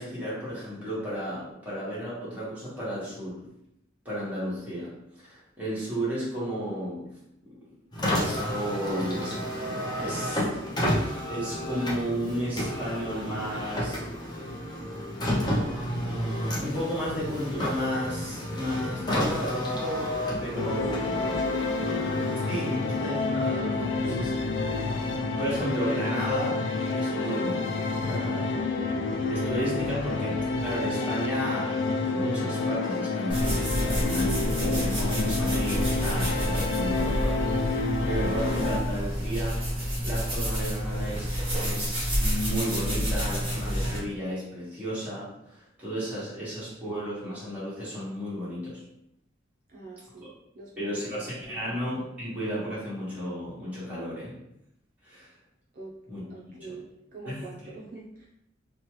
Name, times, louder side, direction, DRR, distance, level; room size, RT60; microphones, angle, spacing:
voice 1, 0.0-3.5 4.0-7.5 8.1-9.5 10.0-10.5 11.3-14.0 16.0-20.9 22.5-24.3 25.4-26.6 26.9-28.5 29.3-41.3 41.6-48.8 50.2-50.3 50.8-54.3 55.0-55.3 56.1-56.2 56.6-56.7 57.2-57.4, equal, 10° right, -10 dB, 1.2 m, -33 dB
Car, 7.9-23.3, equal, 25° left, 0.6 m, -31 dB
voice 2, 20.4-20.8 21.1-22.1 23.8-24.3 49.7-51.8 55.7-55.9 56.3-58.3, right 3 dB, 50° right, -4 dB, 0.5 m, -43 dB
sound 1, 20.6-38.8, left 3 dB, 80° left, 0.3 m, -29 dB
sound 2, 33.3-44.0, equal, 30° right, 1.0 m, -29 dB
2.9 x 2.2 x 3.0 m, 0.80 s
head